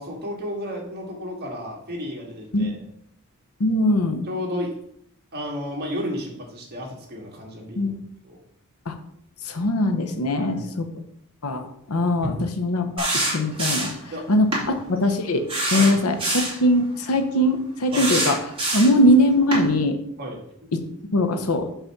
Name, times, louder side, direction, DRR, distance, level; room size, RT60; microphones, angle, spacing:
voice 1, 0.0-2.7 4.3-4.7 5.3-7.9 8.2-8.4 10.3-10.7 12.2-12.5 14.1-14.2 15.7-15.9 17.9-18.1 20.2-20.4, equal, 45° right, -1 dB, 1.9 m, -32 dB
voice 2, 3.6-4.2 7.8-7.9 8.9-9.0 9.4-10.9 11.4-13.1 13.3-13.9 14.3-15.4 15.7-18.4 18.7-20.0 20.7-20.8 21.1-21.7, left 1 dB, 80° left, 7 dB, 0.9 m, -21 dB
sound 1, 13.0-14.0 14.5-14.7 15.5-16.6 17.9-19.0 19.5-19.7, right 2 dB, 25° right, 2.4 m, -25 dB
5.7 x 4.2 x 5.9 m, 0.72 s
head